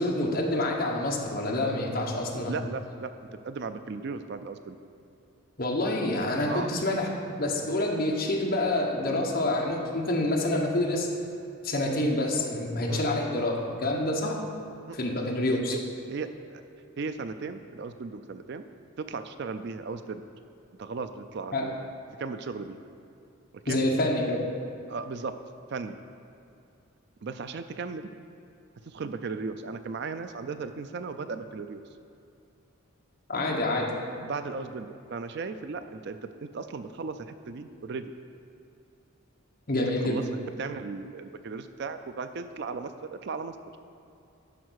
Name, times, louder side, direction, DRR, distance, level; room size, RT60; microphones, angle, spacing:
voice 1, 0.0-2.6 5.6-11.1 11.6-14.4 14.9-15.8 21.5-21.6 23.7-24.4 33.3-33.9 39.7-40.2, left 1 dB, 45° left, -1 dB, 1.2 m, -27 dB
voice 2, 2.5-3.1 3.4-4.8 6.5-6.7 12.9-13.0 14.9-15.0 15.5-15.8 16.1-16.6 17.0-18.6 19.0-20.2 20.8-21.8 22.2-22.8 23.7-23.8 24.9-25.3 25.7-26.0 27.2-28.1 28.9-31.8 34.2-38.0 40.0-42.9 43.2-43.5, right 4 dB, 55° right, 10 dB, 0.4 m, -36 dB
11.0 x 4.6 x 6.3 m, 2.7 s
head